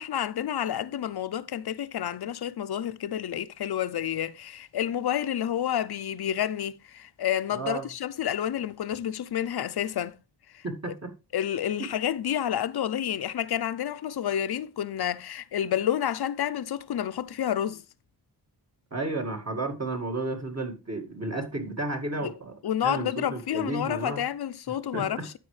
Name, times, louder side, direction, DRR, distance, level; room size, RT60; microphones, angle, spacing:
voice 1, 0.0-10.1 10.5-10.9 11.3-17.8 22.2-22.3 22.6-25.4, left 10 dB, 75° left, 0.6 m, -29 dB
voice 2, 7.5-7.9 10.6-11.1 18.9-22.6 22.8-24.3 24.9-25.3, right 2 dB, 40° right, 1.9 m, -32 dB
12.5 x 4.8 x 3.2 m
cardioid pair, 60°, 39 cm